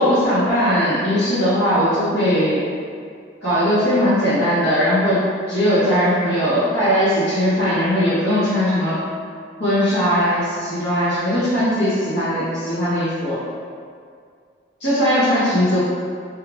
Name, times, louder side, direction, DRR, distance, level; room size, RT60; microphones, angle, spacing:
voice 1, 0.0-2.6 3.4-8.9 9.6-13.4 14.8-15.8, equal, 85° left, -17 dB, 1.3 m, -19 dB
3.2 x 2.4 x 3.3 m, 2.2 s
head